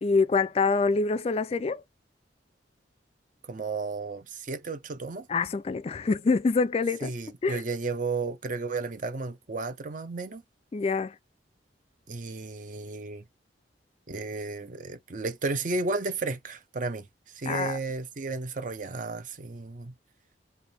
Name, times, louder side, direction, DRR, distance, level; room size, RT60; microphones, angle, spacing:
voice 1, 0.0-1.8 5.3-7.1 7.4-7.6 10.7-11.1 17.5-17.8, left 4 dB, 35° left, 0.3 m, -25 dB
voice 2, 3.4-5.3 7.0-10.4 12.1-13.2 14.1-17.1 17.3-19.9, right 3 dB, 45° right, 0.6 m, -33 dB
3.4 x 2.5 x 4.1 m
head